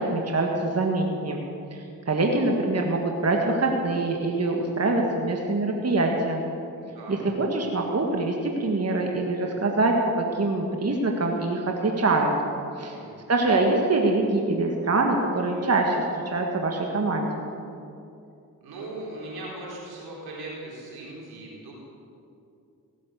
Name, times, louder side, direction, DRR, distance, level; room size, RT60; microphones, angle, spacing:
voice 1, 0.0-1.4 1.7-6.4 7.1-12.3 12.8-12.9 13.3-17.5, right 2 dB, 45° right, 1 dB, 1.7 m, -24 dB
voice 2, 12.9-13.2 18.6-21.7, right 2 dB, 85° right, -4 dB, 4.0 m, -39 dB
16.5 x 7.6 x 8.0 m, 2.6 s
cardioid pair, 50°, 37 cm